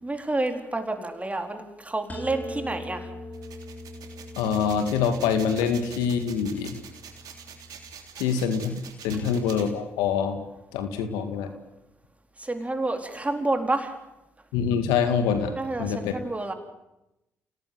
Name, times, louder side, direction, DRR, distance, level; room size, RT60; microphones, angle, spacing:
voice 1, 0.0-3.1 9.1-9.2 12.4-13.9 15.6-16.5, right 2 dB, 20° right, 5 dB, 4.2 m, -29 dB
sound 1, 2.1-7.9, left 1 dB, 25° left, 6.3 m, -42 dB
sound 2, 3.3-9.7, right 8 dB, 70° right, 3.2 m, -45 dB
voice 2, 4.4-6.8 8.2-10.4 10.7-11.5 14.5-15.5 15.8-16.1, left 7 dB, 80° left, 8 dB, 2.0 m, -25 dB
28.0 x 18.0 x 7.8 m, 0.93 s
hypercardioid pair, 45°, 7 cm